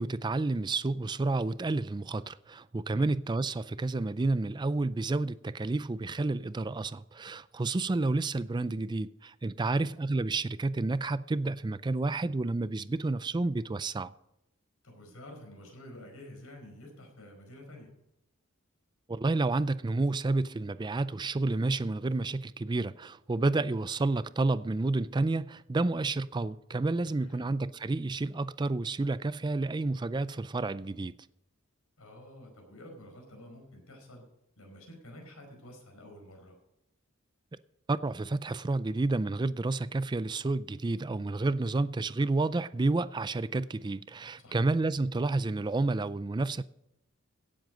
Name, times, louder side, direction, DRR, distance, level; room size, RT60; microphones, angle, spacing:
voice 1, 0.0-14.1 19.1-31.1 37.9-46.6, right 2 dB, 20° right, 0.4 m, -30 dB
voice 2, 9.6-9.9 14.8-17.9 27.0-27.5 32.0-34.2 34.6-36.6 44.4-44.7, left 1 dB, 85° left, 4.9 m, -50 dB
17.0 x 7.8 x 5.1 m
head